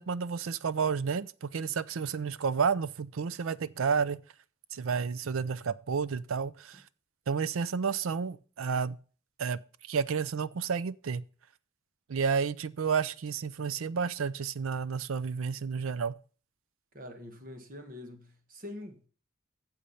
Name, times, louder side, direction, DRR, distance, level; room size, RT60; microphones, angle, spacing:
voice 1, 0.0-4.2 4.7-6.8 7.3-9.0 9.4-11.2 12.1-16.1, right 6 dB, 80° right, 0.5 m, -31 dB
voice 2, 16.9-19.1, left 1 dB, 40° right, 1.3 m, -45 dB
8.4 x 7.3 x 5.6 m
head